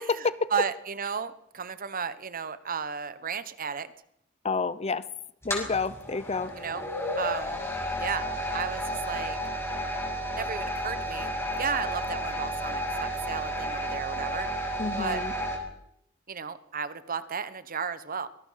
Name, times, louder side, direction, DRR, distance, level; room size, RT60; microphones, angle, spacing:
voice 1, 0.5-3.9 6.5-6.9 7.2-7.6 8.0-8.3 8.5-9.4 10.3-14.5 15.0-15.2 16.3-18.3, right 6 dB, 45° right, 13 dB, 1.1 m, -33 dB
voice 2, 4.4-5.0 5.4-6.5 14.8-15.3, left 4 dB, 30° left, 15 dB, 0.8 m, -29 dB
sound 1, 5.4-15.6, equal, 15° left, 5.8 m, -32 dB
25.0 x 19.5 x 5.8 m, 0.73 s
head